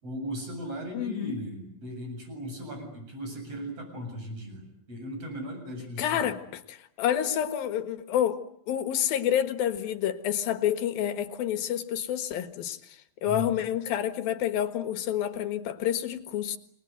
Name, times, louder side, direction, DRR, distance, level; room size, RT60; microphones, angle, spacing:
voice 1, 0.0-6.3 13.2-13.6, right 1 dB, 40° right, 5 dB, 9.0 m, -37 dB
voice 2, 0.9-1.4 6.0-8.4 8.7-16.6, left 10 dB, 80° left, 8 dB, 3.4 m, -29 dB
29.5 x 21.0 x 9.4 m, 0.73 s
omnidirectional pair, 4.1 m